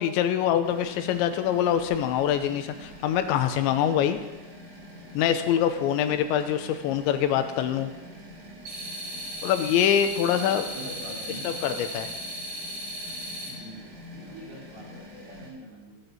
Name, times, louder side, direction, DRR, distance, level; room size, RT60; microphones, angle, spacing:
voice 1, 0.0-4.2 5.1-7.9 9.4-10.7 11.4-12.1, left 9 dB, 90° left, 8 dB, 3.1 m, -24 dB
sound 1, 0.6-15.5, equal, 35° right, 2.2 m, -46 dB
sound 2, 8.7-13.5, equal, 80° right, 8.0 m, -36 dB
voice 2, 10.3-11.6 13.5-16.0, equal, 55° right, -5 dB, 5.6 m, -44 dB
18.5 x 9.1 x 5.5 m, 1.1 s
omnidirectional pair, 5.3 m